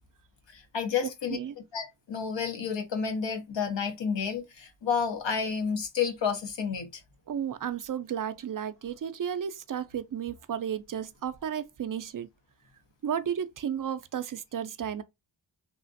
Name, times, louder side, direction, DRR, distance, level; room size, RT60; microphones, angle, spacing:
voice 1, 0.5-1.4 1.7-6.9, left 6 dB, 75° left, 0.8 m, -30 dB
voice 2, 7.3-12.3 13.0-15.0, right 8 dB, 45° right, 0.4 m, -33 dB
3.3 x 2.4 x 2.5 m
wide cardioid pair, 70°, 45 cm